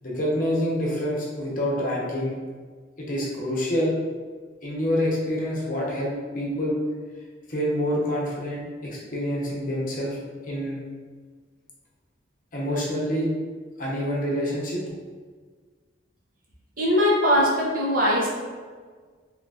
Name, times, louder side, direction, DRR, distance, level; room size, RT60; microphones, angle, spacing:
voice 1, 0.0-2.3 3.0-3.9 4.6-6.8 7.5-10.2 10.4-10.8 12.5-13.3 13.8-14.8, equal, 45° left, -4 dB, 0.8 m, -27 dB
voice 2, 16.8-18.3, equal, 45° right, -4 dB, 0.7 m, -21 dB
3.8 x 2.9 x 2.3 m, 1.5 s
head